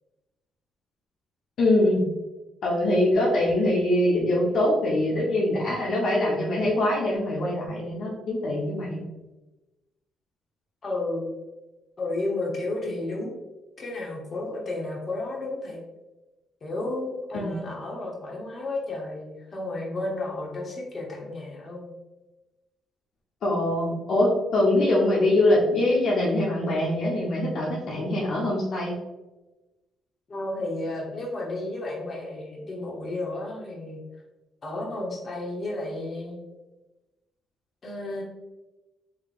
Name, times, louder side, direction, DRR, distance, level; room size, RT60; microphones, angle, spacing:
voice 1, 1.6-2.0 2.6-9.0 17.3-17.6 23.4-28.9, left 1 dB, 70° left, -3 dB, 0.8 m, -23 dB
voice 2, 10.8-11.3 12.0-13.3 13.8-15.8 16.6-21.9 30.3-34.0 34.6-36.4 37.8-38.2, left 2 dB, 40° left, -1 dB, 1.0 m, -32 dB
3.8 x 3.1 x 2.4 m, 1.1 s
cardioid pair, 90°, 0 cm